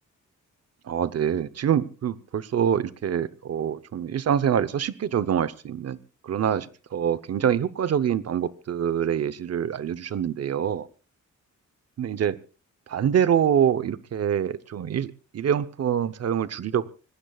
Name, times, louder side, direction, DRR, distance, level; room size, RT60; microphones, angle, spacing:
voice 1, 0.8-10.9 12.0-12.4 12.9-16.9, right 9 dB, 55° right, 14 dB, 0.9 m, -25 dB
25.5 x 19.0 x 2.4 m, 0.34 s
wide cardioid pair, 150°, 31 cm